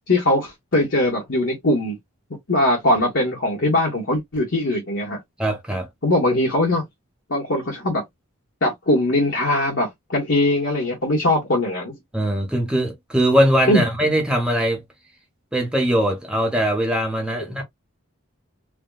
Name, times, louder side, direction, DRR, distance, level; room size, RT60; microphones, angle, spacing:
voice 1, 0.1-2.0 2.5-5.2 6.0-6.8 7.3-8.0 8.6-11.9 13.7-13.8, left 1 dB, 60° left, 1.0 m, -21 dB
voice 2, 5.4-5.9 12.1-14.8 15.5-17.6, equal, 5° right, 0.7 m, -21 dB
3.4 x 2.2 x 2.2 m
head